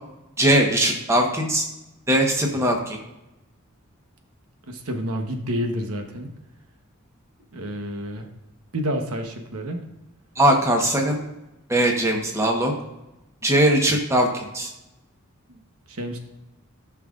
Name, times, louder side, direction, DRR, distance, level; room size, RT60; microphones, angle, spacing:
voice 1, 0.4-1.6 2.1-3.0 10.4-11.2 11.7-12.7 13.4-14.7, right 1 dB, 15° right, 1 dB, 1.2 m, -20 dB
voice 2, 4.7-6.3 7.5-8.3 8.7-9.8 15.5-15.6 15.9-16.2, equal, 85° right, 4 dB, 1.1 m, -29 dB
13.0 x 5.9 x 2.5 m, 0.95 s
head